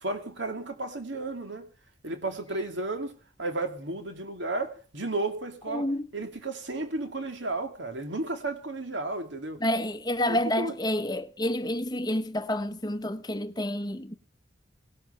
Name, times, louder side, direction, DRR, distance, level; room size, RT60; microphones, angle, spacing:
voice 1, 0.0-1.7 2.0-5.9 6.1-9.6 10.3-10.7, right 2 dB, 65° right, 2.5 m, -33 dB
voice 2, 5.7-6.1 9.6-14.1, left 1 dB, 20° left, 0.9 m, -29 dB
19.0 x 12.0 x 5.6 m
head